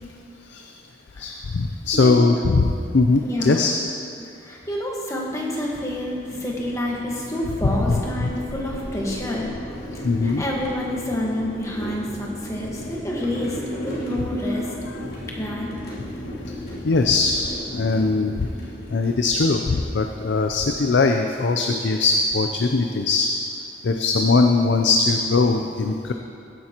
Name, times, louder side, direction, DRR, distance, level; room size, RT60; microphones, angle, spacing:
voice 1, 1.2-3.7 7.6-8.3 10.0-10.4 14.9-15.0 16.8-17.4 17.7-18.3 18.9-23.3 23.8-26.1, left 3 dB, 75° left, 4 dB, 0.5 m, -20 dB
voice 2, 1.9-2.4 3.2-3.7 4.4-9.5 9.9-13.6 13.8-14.6 15.3-15.7, left 1 dB, 15° left, -3 dB, 1.4 m, -28 dB
sound 1, 5.4-20.4, left 1 dB, 55° left, 2.9 m, -36 dB
16.0 x 10.0 x 3.0 m, 2.5 s
head